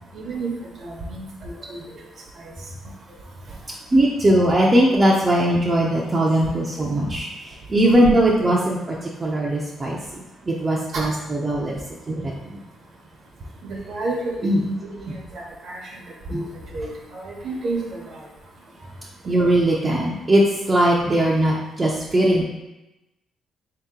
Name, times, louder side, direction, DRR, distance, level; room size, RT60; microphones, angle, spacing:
voice 1, 0.1-0.5 0.8-1.8 10.9-11.1 13.6-15.8 16.3-16.4 16.7-18.0, right 2 dB, 60° right, -2 dB, 0.9 m, -30 dB
voice 2, 3.9-11.7 12.1-12.6 14.4-14.6 16.3-16.4 19.3-22.4, right 1 dB, 25° right, -4 dB, 0.6 m, -20 dB
3.8 x 2.8 x 3.7 m, 0.98 s
cardioid pair, 90°, 0 cm